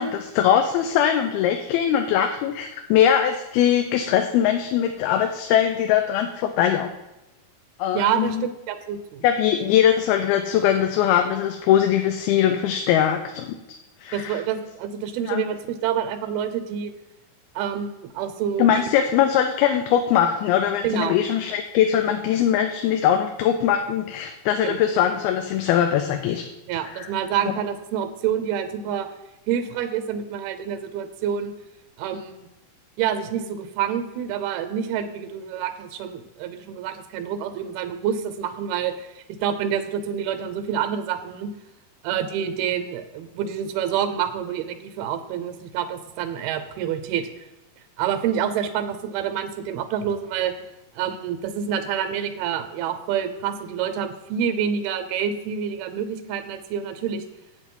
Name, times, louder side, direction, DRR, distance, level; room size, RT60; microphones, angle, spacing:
voice 1, 0.0-6.9 7.8-8.5 9.2-13.6 14.0-14.4 15.3-15.4 18.6-26.4 26.9-27.1 27.4-27.5, left 9 dB, 85° left, 6 dB, 2.6 m, -21 dB
voice 2, 7.9-9.2 14.1-16.9 17.6-18.8 20.8-21.2 24.6-24.8 26.7-29.1 29.5-31.5 32.0-32.4 33.0-41.5 42.0-47.3 48.0-50.5 51.0-57.3, right 8 dB, 85° right, 9 dB, 2.7 m, -27 dB
8.3 x 7.2 x 5.3 m, 0.97 s
omnidirectional pair, 4.3 m